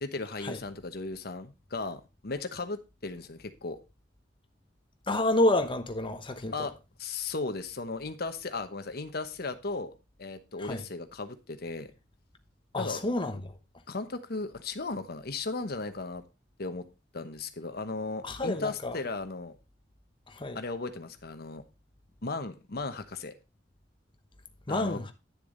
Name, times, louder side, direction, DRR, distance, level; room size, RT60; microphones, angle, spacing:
voice 1, 0.0-3.8 6.5-6.7 7.0-9.9 10.2-11.9 12.8-13.0 13.9-16.2 16.6-16.8 17.1-19.5 20.5-21.6 22.2-23.3 24.7-25.0, left 3 dB, 55° left, 1.1 m, -36 dB
voice 2, 5.1-6.7 10.6-10.8 12.7-13.5 18.2-19.0 20.3-20.6 24.7-25.1, left 1 dB, 30° left, 1.1 m, -29 dB
10.0 x 6.9 x 3.9 m
head